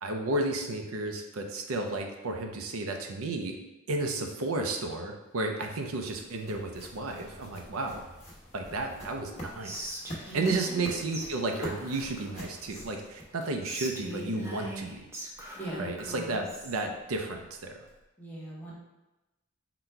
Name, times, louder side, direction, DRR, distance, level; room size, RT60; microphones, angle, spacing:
voice 1, 0.0-3.6 3.9-8.1 8.5-10.0 10.3-15.1 15.8-17.8, right 2 dB, 85° right, 3 dB, 0.5 m, -32 dB
sound 1, 5.2-13.8, equal, 30° left, 1.0 m, -45 dB
Whispering, 9.6-10.9 11.1-11.3 11.5-13.1 13.6-16.8, right 1 dB, 15° right, 0.6 m, -41 dB
voice 2, 10.3-10.9 15.5-15.9 18.2-18.7, right 1 dB, 10° left, -5 dB, 0.9 m, -39 dB
3.9 x 2.2 x 4.5 m, 1.0 s
head